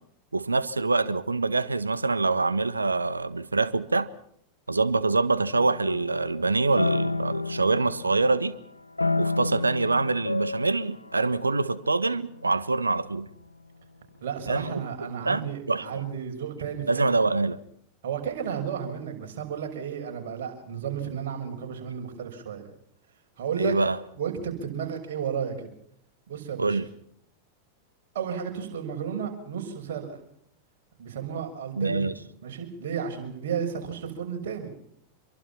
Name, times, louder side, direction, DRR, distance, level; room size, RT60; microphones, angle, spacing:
voice 1, 0.3-4.1 4.7-8.5 9.2-13.3 14.5-14.8 15.2-16.0 16.9-17.6 23.6-24.0 26.6-26.8 31.8-32.1, right 3 dB, 80° right, 1.4 m, -25 dB
sound 1, 5.5-8.5 9.0-12.9, left 3 dB, 85° left, 0.9 m, -31 dB
voice 2, 14.2-17.0 18.0-22.6 23.4-23.7 24.1-25.7 26.3-26.8 28.1-30.2 31.0-32.2 32.4-34.7, right 7 dB, 55° right, 6.6 m, -33 dB
27.5 x 23.0 x 5.8 m
figure-of-eight pair, 90°, 0 cm